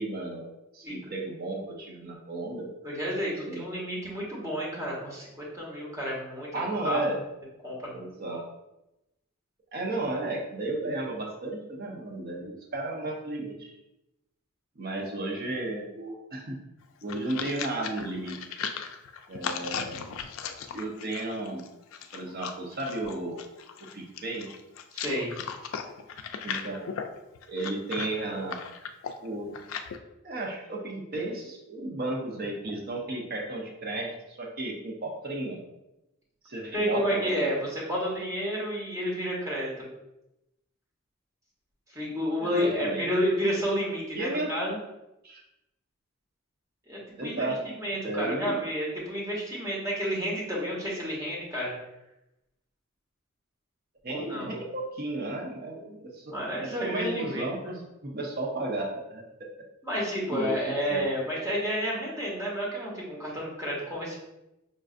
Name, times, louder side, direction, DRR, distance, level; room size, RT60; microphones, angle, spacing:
voice 1, 0.0-2.7 3.5-3.6 6.5-7.2 7.9-8.5 9.7-13.7 14.8-16.6 17.0-18.4 19.3-20.0 20.7-21.6 22.1-23.5 23.8-24.5 26.4-26.9 27.5-28.6 29.2-29.6 30.2-35.6 36.4-37.5 42.4-43.1 44.1-44.5 45.2-45.4 47.2-47.8 48.0-48.6 54.0-56.3 56.6-59.5 60.3-60.6 60.9-61.0, right 2 dB, 50° right, -1 dB, 0.6 m, -34 dB
voice 2, 2.8-7.1 7.6-7.9 24.9-25.3 36.7-39.8 41.9-44.8 46.9-51.7 54.1-54.5 56.3-57.7 59.8-64.1, equal, 15° right, -5 dB, 1.1 m, -30 dB
sound 1, 16.8-30.0, left 7 dB, 75° left, 0.3 m, -37 dB
5.1 x 2.5 x 2.4 m, 0.92 s
head